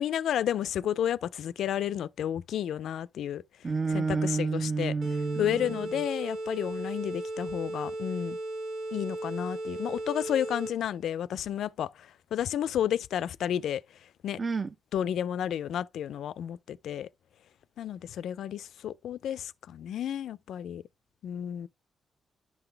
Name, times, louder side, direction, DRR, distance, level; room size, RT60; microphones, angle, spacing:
voice 1, 0.0-3.4 3.9-5.0 5.4-8.4 8.9-11.9 12.3-13.8 14.2-14.4 14.9-17.1 17.8-20.8 21.2-21.7, left 10 dB, 85° left, 0.3 m, -31 dB
voice 2, 3.6-6.0 14.4-14.7, right 4 dB, 35° right, 0.4 m, -30 dB
sound 1, 5.0-11.0, right 1 dB, 75° right, 1.8 m, -36 dB
11.0 x 3.9 x 3.3 m
cardioid pair, 120°, 0 cm